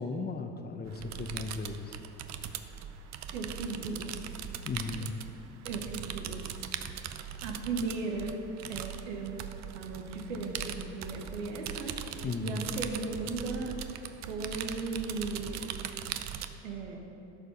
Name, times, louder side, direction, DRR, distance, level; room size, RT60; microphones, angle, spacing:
voice 1, 0.0-2.0 4.7-5.1 12.2-12.6, left 4 dB, 25° left, 7 dB, 0.9 m, -36 dB
sound 1, 0.8-16.5, right 9 dB, 50° right, 0.6 m, -40 dB
voice 2, 3.3-4.1 5.6-6.4 7.4-8.3 8.7-9.5 9.7-13.7 14.3-15.7 16.6-17.0, right 3 dB, 90° right, 2 dB, 1.3 m, -36 dB
13.0 x 5.4 x 5.3 m, 2.9 s
supercardioid pair, 80°, 36 cm